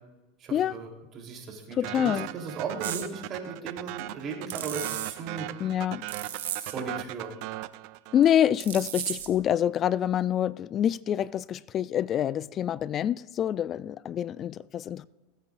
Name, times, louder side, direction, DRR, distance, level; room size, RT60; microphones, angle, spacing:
voice 1, 0.4-0.9 1.1-5.5 6.5-7.3, right 5 dB, 40° right, 3.3 m, -37 dB
voice 2, 1.7-2.3 5.6-6.1 8.1-15.1, left 10 dB, 35° left, 0.3 m, -26 dB
sound 1, 1.8-8.5, right 17 dB, 60° right, 0.5 m, -38 dB
sound 2, 2.8-3.1 4.5-5.1 6.1-6.7 8.6-9.4, right 10 dB, 85° right, 1.4 m, -34 dB
22.5 x 9.1 x 2.5 m
hypercardioid pair, 110°, 0 cm